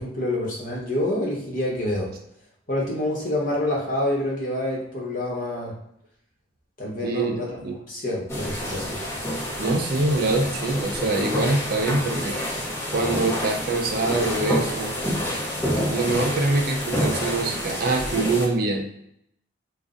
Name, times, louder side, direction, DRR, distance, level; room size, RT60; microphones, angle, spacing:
voice 1, 0.0-2.1 2.7-5.7 6.8-7.6 7.9-9.0 15.4-15.7, left 1 dB, 45° left, -3 dB, 0.9 m, -27 dB
voice 2, 7.0-7.8 9.6-12.4 12.9-15.0 15.7-19.1, right 2 dB, 55° right, 3 dB, 0.4 m, -24 dB
sound 1, 8.3-18.5, equal, 15° left, 0.6 m, -28 dB
2.5 x 2.0 x 3.6 m, 0.76 s
head